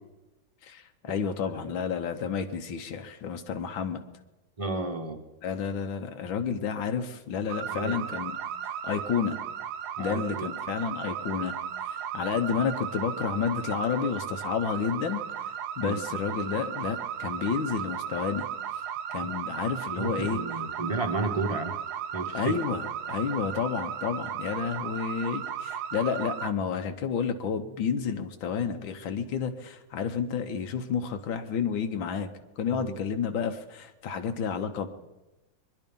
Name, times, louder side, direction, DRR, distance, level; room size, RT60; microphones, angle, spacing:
voice 1, 0.6-4.0 5.4-8.3 8.6-9.4 10.0-11.6 11.8-15.5 15.8-18.5 19.1-20.4 22.3-32.3 32.6-34.9, left 6 dB, 85° left, 7 dB, 1.8 m, -30 dB
voice 2, 4.6-5.2 7.7-8.0 10.0-10.5 15.8-16.0 19.2-19.3 19.9-21.8 22.1-22.5 32.7-33.0, right 3 dB, 25° right, 5 dB, 0.9 m, -32 dB
sound 1, 7.5-26.5, right 9 dB, 65° right, 1.1 m, -35 dB
23.0 x 11.0 x 5.3 m, 1.0 s
omnidirectional pair, 2.1 m